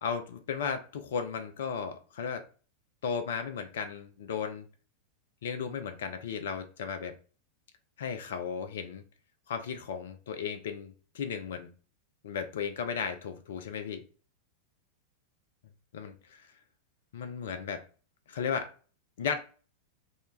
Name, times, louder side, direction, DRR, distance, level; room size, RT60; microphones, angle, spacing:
voice 1, 0.0-2.5 3.0-4.7 5.4-7.1 8.0-9.0 9.5-11.7 12.2-14.0 15.9-16.5 17.1-17.8 18.3-18.7 19.2-19.4, left 6 dB, 60° left, 0.3 m, -35 dB
2.2 x 2.0 x 3.0 m
figure-of-eight pair, 90°, 0 cm